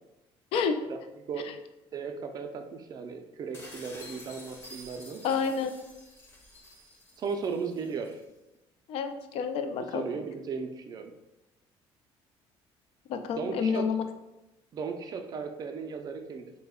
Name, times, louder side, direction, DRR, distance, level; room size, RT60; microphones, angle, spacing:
voice 1, 0.9-1.5 1.9-5.2 7.2-8.2 9.8-11.1 13.3-13.9 14.7-16.5, right 5 dB, 40° right, 6 dB, 0.4 m, -36 dB
sound 1, 3.5-8.2, left 1 dB, 25° left, 0.6 m, -50 dB
voice 2, 5.2-5.8 8.9-10.0 13.1-14.0, left 6 dB, 70° left, 8 dB, 0.4 m, -29 dB
3.2 x 2.1 x 3.5 m, 0.95 s
cardioid pair, 130°, 10 cm